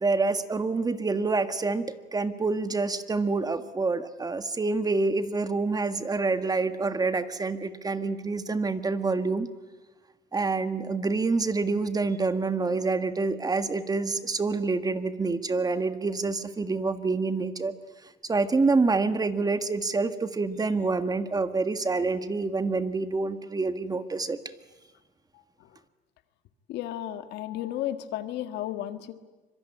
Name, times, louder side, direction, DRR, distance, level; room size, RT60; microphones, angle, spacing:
voice 1, 0.0-1.8 2.1-9.5 10.3-17.7 18.3-24.4, right 3 dB, 20° right, 10 dB, 1.6 m, -27 dB
voice 2, 26.7-29.1, left 12 dB, 85° left, 9 dB, 1.7 m, -33 dB
25.0 x 23.0 x 9.9 m, 1.2 s
cardioid pair, 110°, 17 cm